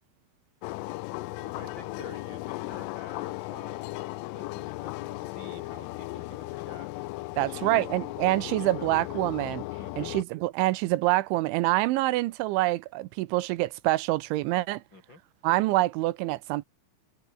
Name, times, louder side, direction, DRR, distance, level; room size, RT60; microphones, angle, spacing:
sound 1, 0.6-10.2, left 20 dB, 90° left, 3.2 m, -36 dB
voice 1, 1.4-8.1 8.6-9.2 9.7-10.1 14.9-15.2, left 2 dB, 20° left, 8.5 m, -49 dB
voice 2, 7.4-9.6 10.0-14.8 15.4-16.7, right 18 dB, 85° right, 3.0 m, -26 dB
omnidirectional pair, 5.8 m